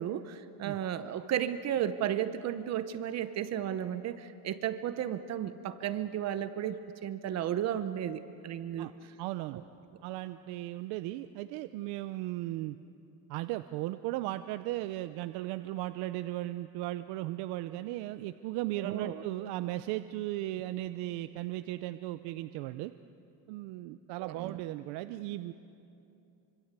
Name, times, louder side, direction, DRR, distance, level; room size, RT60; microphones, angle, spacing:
voice 1, 0.0-8.9 18.8-19.2 24.2-24.6, right 10 dB, 40° right, 11 dB, 0.9 m, -34 dB
voice 2, 9.2-9.6 10.0-12.8 13.3-22.9 23.5-25.5, right 16 dB, 75° right, 11 dB, 0.8 m, -36 dB
26.0 x 25.5 x 8.2 m, 2.8 s
cardioid pair, 155°, 40 cm